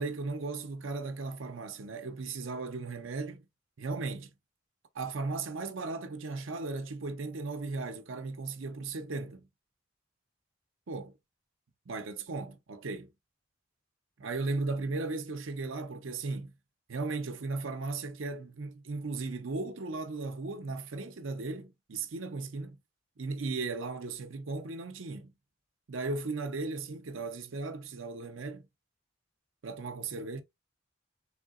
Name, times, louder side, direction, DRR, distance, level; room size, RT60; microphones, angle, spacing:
voice 1, 0.0-3.5 3.8-4.3 4.9-9.4 10.9-11.1 11.9-13.1 14.2-16.5 16.9-22.8 23.2-25.3 25.9-28.7 29.6-30.4, right 3 dB, 80° right, 0.7 m, -36 dB
3.6 x 2.8 x 2.4 m
head